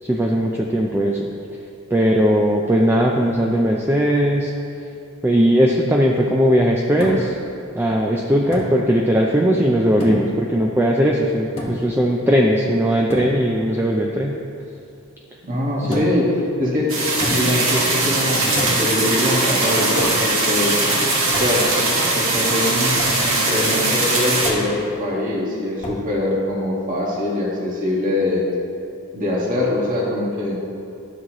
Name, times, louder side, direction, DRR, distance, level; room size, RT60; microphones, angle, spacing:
voice 1, 0.0-1.3 1.9-4.5 5.2-7.4 7.7-14.4 15.8-16.0, equal, 10° right, -1 dB, 0.4 m, -18 dB
sound 1, 7.0-7.4 8.5-8.8 10.0-10.4 11.6-11.9 13.1-13.4 15.9-16.3 17.2-17.6 18.6-18.9 20.0-20.4 21.3-21.6 23.0-23.2 24.4-24.8 25.8-26.1, left 1 dB, 30° left, 1.4 m, -29 dB
voice 2, 15.4-16.3 16.6-16.9 17.3-20.7 21.4-21.7 22.1-28.4 29.1-30.6, left 1 dB, 40° right, -5 dB, 1.6 m, -23 dB
sound 2, 16.9-24.5, right 2 dB, 75° right, 1.7 m, -20 dB
12.0 x 6.3 x 3.0 m, 2.6 s
head